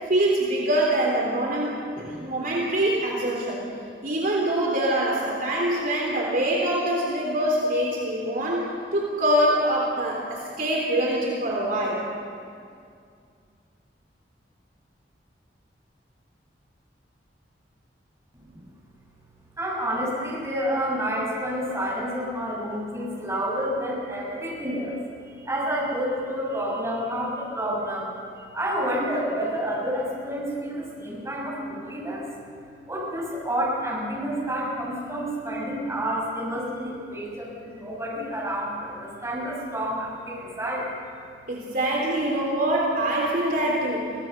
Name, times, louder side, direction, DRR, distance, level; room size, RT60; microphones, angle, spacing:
voice 1, 0.1-3.6 4.0-8.7 8.9-12.0 41.5-44.1, right 1 dB, 55° right, -3 dB, 3.7 m, -24 dB
voice 2, 19.6-25.0 25.2-28.1 28.4-32.3 32.9-40.9, equal, 15° right, -4 dB, 6.6 m, -29 dB
24.5 x 18.0 x 6.7 m, 2.3 s
head